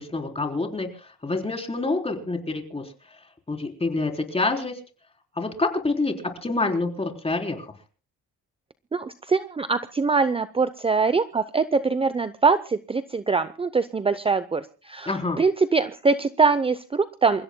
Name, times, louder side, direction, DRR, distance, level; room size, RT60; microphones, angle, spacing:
voice 1, 0.0-3.2 3.5-4.8 5.4-6.2 6.4-7.7 15.1-15.4, left 3 dB, 20° left, 3 dB, 3.8 m, -27 dB
voice 2, 8.9-17.4, right 4 dB, 20° right, 13 dB, 0.7 m, -23 dB
28.0 x 15.5 x 2.2 m, 0.38 s
cardioid pair, 90°, 30 cm